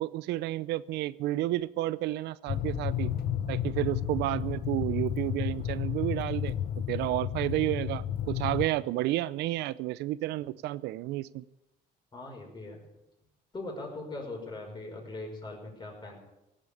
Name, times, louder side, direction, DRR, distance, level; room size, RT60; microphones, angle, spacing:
voice 1, 0.0-3.1 3.5-6.5 6.9-11.4, right 16 dB, 85° right, 18 dB, 0.6 m, -31 dB
sound 1, 2.5-8.7, left 10 dB, 65° left, 1.1 m, -32 dB
voice 2, 12.1-12.8 13.5-16.2, left 2 dB, 25° left, 0 dB, 5.7 m, -40 dB
18.0 x 8.1 x 8.6 m, 0.93 s
cardioid pair, 110°, 17 cm